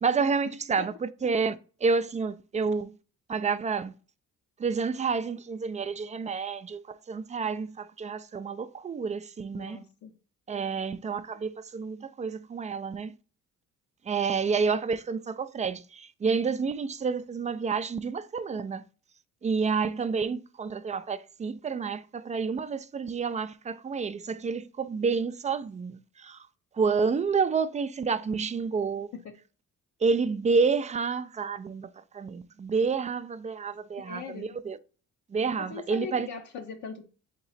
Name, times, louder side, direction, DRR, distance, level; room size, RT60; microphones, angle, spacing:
voice 1, 0.0-3.0 3.3-3.9 4.6-9.8 10.5-13.2 14.1-18.8 19.4-26.5 26.7-29.1 30.0-34.8 35.3-36.3, right 5 dB, 25° right, 0.3 m, -29 dB
voice 2, 9.6-10.1 29.1-29.3 34.0-34.5 35.6-37.0, left 6 dB, 70° left, 0.7 m, -40 dB
3.8 x 3.0 x 4.1 m
cardioid pair, 90°, 30 cm